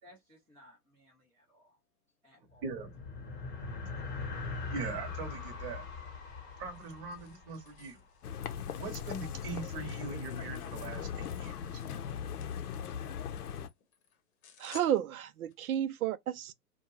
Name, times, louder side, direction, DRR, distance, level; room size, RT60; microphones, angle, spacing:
voice 1, 0.0-1.8 2.2-2.7, left 1 dB, 5° right, 0.3 m, -60 dB
sound 1, 2.5-8.2, left 4 dB, 20° left, 0.9 m, -42 dB
voice 2, 2.6-2.9 4.7-5.9 6.6-8.0 8.8-11.8, right 4 dB, 35° right, 0.9 m, -41 dB
sound 2, 6.2-15.8, left 3 dB, 45° left, 0.8 m, -58 dB
sound 3, 8.2-13.7, left 8 dB, 75° left, 0.6 m, -39 dB
voice 3, 14.6-16.5, right 10 dB, 65° right, 0.5 m, -32 dB
2.5 x 2.2 x 3.0 m
hypercardioid pair, 140°, 46 cm